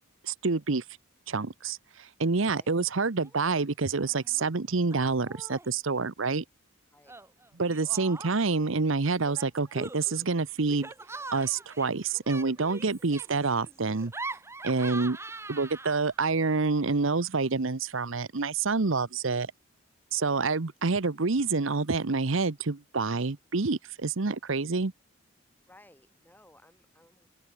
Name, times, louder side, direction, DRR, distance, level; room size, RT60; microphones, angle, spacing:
voice 1, 0.2-0.8 1.3-6.4 7.6-10.9 11.3-14.1 14.6-15.2 15.5-19.5 20.1-24.9, right 4 dB, 70° right, 0.9 m, -27 dB
Laughter, 3.2-3.6 3.9-4.5 4.9-5.8 7.1-8.6 9.2-16.2, right 3 dB, 15° right, 1.0 m, -43 dB
voice 2, 25.7-27.3, left 1 dB, 10° left, 6.8 m, -59 dB
open air
head